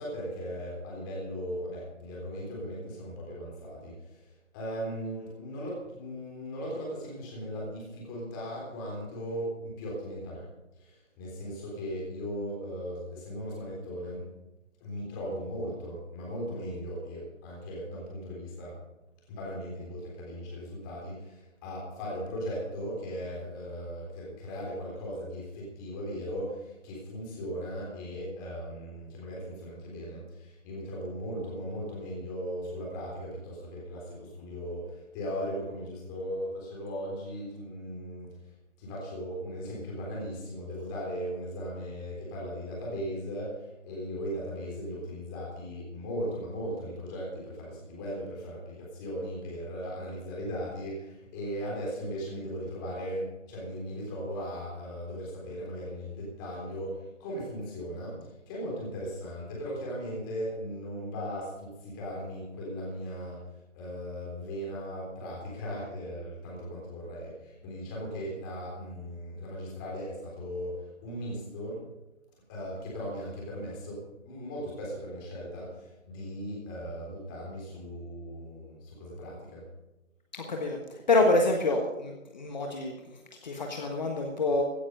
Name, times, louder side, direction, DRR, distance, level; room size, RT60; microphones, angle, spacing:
voice 1, 0.0-10.5 10.8-14.3 14.8-18.8 19.3-38.5 38.8-71.9 72.5-79.7, equal, 15° left, -3 dB, 3.7 m, -38 dB
voice 2, 80.3-84.6, left 2 dB, 35° left, 2 dB, 1.4 m, -27 dB
16.0 x 9.7 x 5.3 m, 0.96 s
figure-of-eight pair, 160°, 38 cm